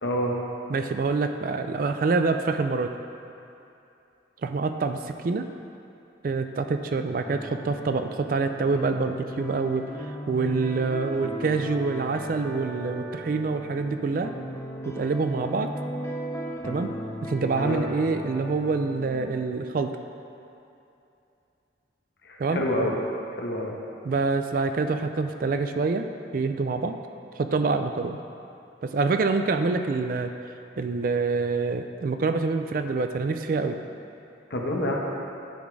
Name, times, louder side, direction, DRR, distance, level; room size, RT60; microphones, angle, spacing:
voice 1, 0.0-0.4 17.6-17.9 22.2-22.9 23.3-23.8 34.5-35.0, equal, 65° left, -2 dB, 1.2 m, -27 dB
voice 2, 0.7-2.9 4.4-5.5 6.2-9.9 10.3-14.3 14.9-15.7 16.6-16.9 17.3-19.9 22.4-22.6 24.0-26.1 26.3-27.0 27.4-28.2 28.8-30.3 30.8-33.8, right 4 dB, 50° right, 7 dB, 0.3 m, -26 dB
sound 1, 7.2-19.5, equal, 15° left, 0.5 m, -37 dB
10.5 x 4.2 x 4.6 m, 2.8 s
head